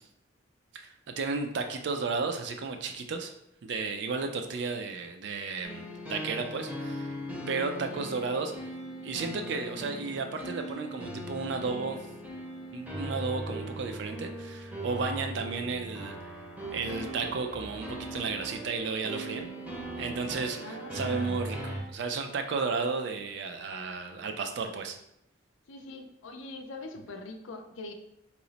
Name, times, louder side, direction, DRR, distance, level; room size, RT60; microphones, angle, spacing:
voice 1, 0.7-3.3 3.6-7.2 7.5-8.5 9.0-12.1 12.7-16.2 16.7-19.5 20.0-25.0, right 4 dB, 60° right, 5 dB, 0.4 m, -33 dB
sound 1, 5.6-21.8, right 1 dB, 5° right, 0.6 m, -39 dB
voice 2, 20.6-21.4 25.7-27.9, left 2 dB, 80° left, 5 dB, 0.4 m, -43 dB
3.0 x 2.0 x 3.9 m, 0.78 s
head